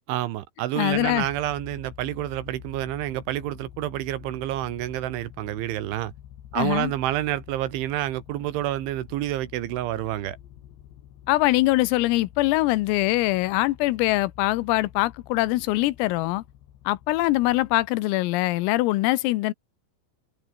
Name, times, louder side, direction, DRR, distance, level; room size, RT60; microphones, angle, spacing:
voice 1, 0.1-6.1 6.5-10.4, right 14 dB, 70° right, 3.4 m, -28 dB
voice 2, 0.8-1.3 6.6-6.9 11.3-16.4 16.9-19.5, left 19 dB, 90° left, 3.6 m, -23 dB
sound 1, 0.9-17.9, left 11 dB, 65° left, 4.0 m, -47 dB
omnidirectional pair, 6.0 m